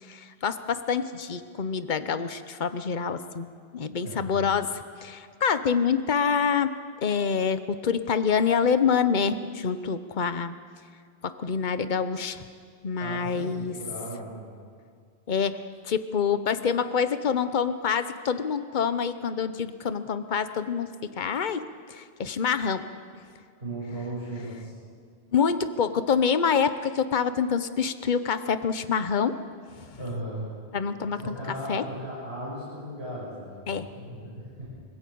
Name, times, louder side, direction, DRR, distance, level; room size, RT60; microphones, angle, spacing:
voice 1, 0.1-4.7 5.0-6.7 7.0-10.5 11.2-12.4 12.8-13.7 15.3-22.8 25.3-29.4 30.7-31.3 31.7-31.8 33.7-33.9, left 6 dB, 45° left, 11 dB, 1.1 m, -26 dB
voice 2, 4.0-4.4 13.0-14.5 23.6-24.7 30.0-30.5 31.1-34.7, right 1 dB, 65° right, -8 dB, 7.1 m, -37 dB
24.5 x 16.5 x 8.6 m, 2.2 s
omnidirectional pair, 1.1 m